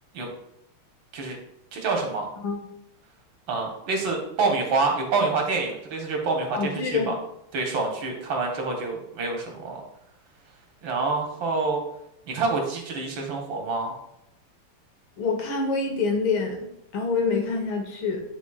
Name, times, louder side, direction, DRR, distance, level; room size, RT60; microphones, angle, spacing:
voice 1, 1.7-2.3 3.5-7.2 7.5-9.8 10.8-11.8 12.3-14.0, right 3 dB, 65° right, 1 dB, 1.8 m, -27 dB
voice 2, 6.5-7.1 15.2-18.2, left 4 dB, 80° left, 4 dB, 1.8 m, -26 dB
10.0 x 4.2 x 2.3 m, 0.79 s
omnidirectional pair, 2.3 m